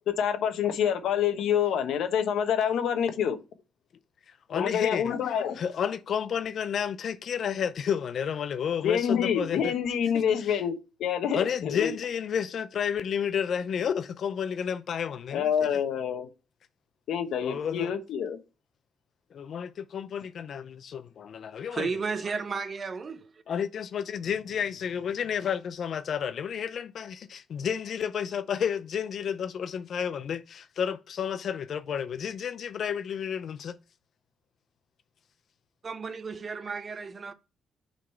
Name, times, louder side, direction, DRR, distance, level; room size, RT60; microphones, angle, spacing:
voice 1, 0.1-3.4 4.5-5.6 8.8-10.7 11.0-11.9 15.3-16.3 17.1-18.4, left 8 dB, 75° left, 1.0 m, -27 dB
voice 2, 4.3-5.1 5.6-9.7 10.1-10.6 11.3-15.5 17.4-17.9 19.3-21.9 23.5-33.8, left 8 dB, 60° left, 0.4 m, -31 dB
voice 3, 21.7-23.4 35.8-37.3, right 4 dB, 40° right, 0.7 m, -33 dB
6.2 x 4.1 x 4.4 m
cardioid pair, 90°, 0 cm